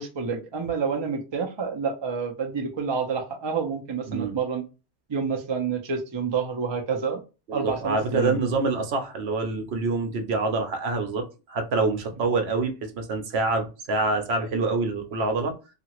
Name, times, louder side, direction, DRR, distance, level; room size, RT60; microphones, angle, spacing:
voice 1, 0.0-4.6 5.1-7.2 7.5-8.4, right 5 dB, 35° right, 0.4 m, -28 dB
voice 2, 7.5-15.5, right 3 dB, 70° right, 0.9 m, -26 dB
2.8 x 2.4 x 2.9 m
omnidirectional pair, 1.2 m